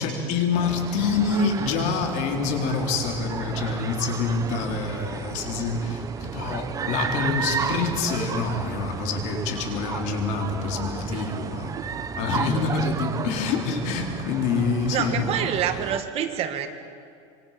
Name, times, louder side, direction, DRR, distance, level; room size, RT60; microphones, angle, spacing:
voice 1, 0.0-11.7 12.2-15.5, left 4 dB, 55° left, 2 dB, 4.3 m, -26 dB
sound 1, 0.6-16.0, right 6 dB, 20° right, 1.0 m, -33 dB
voice 2, 14.9-16.7, right 9 dB, 40° right, 7 dB, 1.9 m, -27 dB
27.5 x 24.0 x 6.0 m, 2.4 s
supercardioid pair, 140°, 15 cm